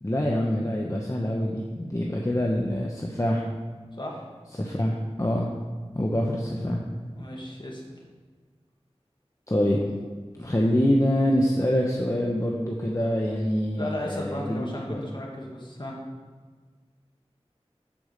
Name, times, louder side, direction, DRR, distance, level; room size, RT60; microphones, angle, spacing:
voice 1, 0.0-3.5 4.6-5.5 5.9-6.8 9.5-9.8 10.4-15.0, equal, 30° left, -1 dB, 0.9 m, -25 dB
voice 2, 7.1-7.8 13.8-16.0, left 1 dB, 45° left, -2 dB, 2.1 m, -35 dB
8.8 x 4.9 x 6.5 m, 1.5 s
wide cardioid pair, 45°, 11 cm